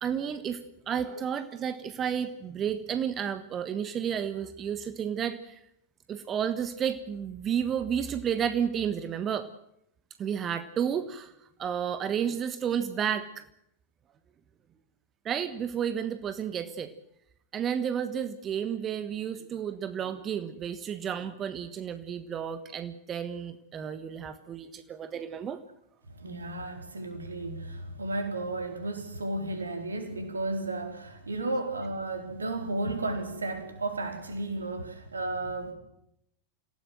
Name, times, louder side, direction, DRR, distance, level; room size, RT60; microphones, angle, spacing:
voice 1, 0.0-5.6 6.1-9.5 10.2-11.3 11.6-13.4 15.2-16.9 17.5-25.6, right 8 dB, 25° right, 11 dB, 1.4 m, -31 dB
voice 2, 26.1-35.7, right 2 dB, 75° right, 5 dB, 4.2 m, -33 dB
27.5 x 17.0 x 7.9 m, 0.77 s
figure-of-eight pair, 90°, 0 cm